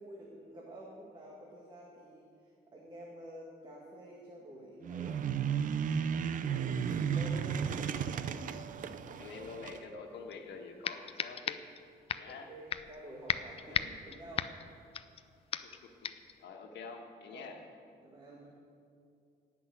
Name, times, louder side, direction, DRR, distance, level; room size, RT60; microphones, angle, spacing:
voice 1, 0.0-5.4 5.8-7.8 12.3-14.5 17.3-17.5 18.0-18.5, right 1 dB, 25° right, -3 dB, 1.8 m, -50 dB
sound 1, 4.8-9.8, right 7 dB, 50° right, 0.6 m, -34 dB
voice 2, 8.8-11.6 12.2-12.5 13.6-13.9 15.6-17.7, left 4 dB, 90° left, 3 dB, 1.5 m, -47 dB
sound 2, 10.3-10.4 10.8-11.8 12.1-12.3 12.7-13.0 13.3-15.2 15.5-15.8 16.0-16.3, left 7 dB, 35° left, 0.4 m, -36 dB
17.0 x 6.1 x 9.2 m, 2.5 s
cardioid pair, 170°, 18 cm